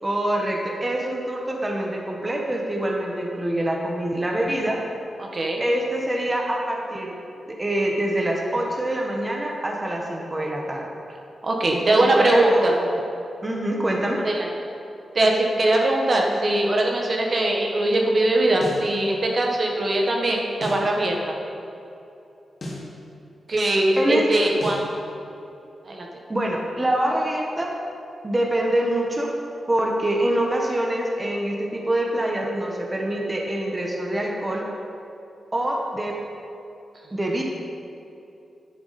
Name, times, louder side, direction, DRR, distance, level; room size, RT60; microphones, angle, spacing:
voice 1, 0.0-4.8 5.6-7.1 7.5-10.9 11.7-12.9 13.4-14.2 24.0-24.3 26.3-27.7 28.2-29.3 29.7-34.7 35.5-36.2 37.1-37.4, right 1 dB, 20° right, -1 dB, 1.2 m, -25 dB
voice 2, 5.2-5.6 11.4-12.7 14.2-14.5 15.1-21.3 23.5-24.8 25.8-26.1, right 1 dB, 40° right, 0 dB, 1.2 m, -21 dB
sound 1, 18.6-18.9 20.6-20.9 22.6-22.9 24.6-24.9, left 1 dB, 45° left, 2.3 m, -34 dB
10.5 x 9.2 x 4.2 m, 2.8 s
wide cardioid pair, 110°, 0 cm